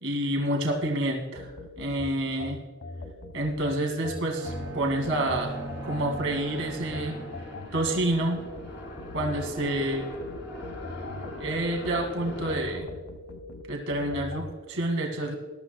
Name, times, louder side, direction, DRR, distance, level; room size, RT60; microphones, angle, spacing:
voice 1, 0.0-1.5 1.8-2.6 3.3-5.6 5.8-7.2 7.7-8.4 9.1-10.1 11.4-12.9 13.7-15.4, right 1 dB, 70° right, 1 dB, 1.9 m, -28 dB
sound 1, 1.4-14.5, left 2 dB, 90° left, 1.2 m, -41 dB
Bowed string instrument, 4.0-7.7, right 4 dB, 90° right, 2.2 m, -40 dB
sound 2, 4.4-12.8, left 1 dB, 55° left, 4.1 m, -41 dB
21.0 x 12.5 x 2.3 m, 1.4 s
head